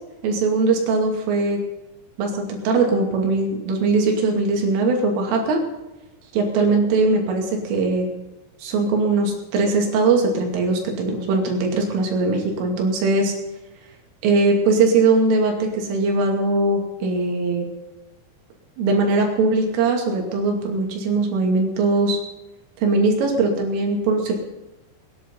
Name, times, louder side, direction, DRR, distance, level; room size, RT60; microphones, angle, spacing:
voice 1, 0.2-1.6 2.2-5.6 6.3-8.1 8.6-13.3 14.2-17.6 18.8-22.2 22.8-24.4, right 3 dB, 75° right, 1 dB, 5.0 m, -20 dB
20.0 x 10.5 x 5.5 m, 1.0 s
omnidirectional pair, 5.8 m